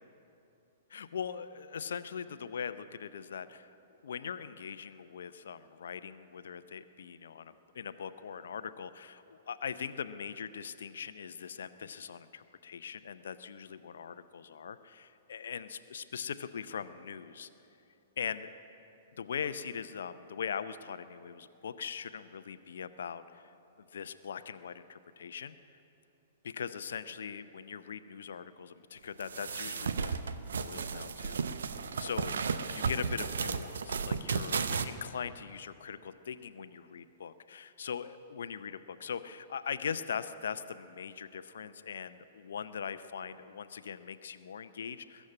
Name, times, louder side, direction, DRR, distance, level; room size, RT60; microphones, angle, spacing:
voice 1, 0.9-3.7 4.0-17.5 18.2-18.5 19.1-23.5 23.9-25.5 26.4-30.2 30.6-31.4 32.0-32.4 32.7-45.3, left 7 dB, 65° left, 12 dB, 0.6 m, -41 dB
sound 1, 29.2-34.8, right 5 dB, 65° right, 0.7 m, -34 dB
21.0 x 7.3 x 9.5 m, 2.8 s
figure-of-eight pair, 110°, 0 cm